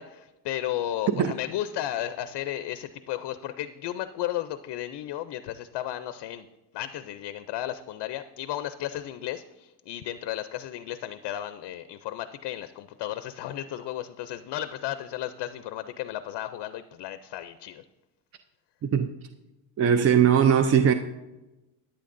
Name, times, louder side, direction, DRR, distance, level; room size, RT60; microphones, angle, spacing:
voice 1, 0.0-6.5 6.7-17.8, left 12 dB, 65° left, 0.6 m, -34 dB
voice 2, 19.8-20.9, right 8 dB, 35° right, 0.4 m, -19 dB
14.0 x 10.0 x 2.5 m
cardioid pair, 145°, 46 cm